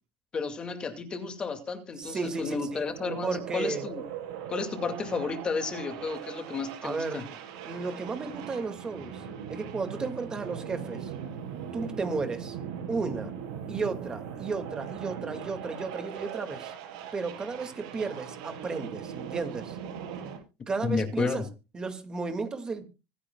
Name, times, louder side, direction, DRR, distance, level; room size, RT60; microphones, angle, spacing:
voice 1, 0.3-4.1 4.5-7.3 20.8-21.5, left 4 dB, 25° left, 7 dB, 2.3 m, -32 dB
voice 2, 2.0-2.8 3.2-3.8 6.8-7.2 7.6-9.2 9.5-11.1 11.7-12.6 12.9-13.3 13.7-16.7 17.1-19.8 20.2-20.4 20.7-21.4 21.7-22.8, right 4 dB, 20° right, 7 dB, 2.2 m, -33 dB
sound 1, 2.0-20.4, right 8 dB, 80° right, 6.7 m, -40 dB
25.0 x 9.9 x 2.4 m, 0.29 s
supercardioid pair, 120°, 3 cm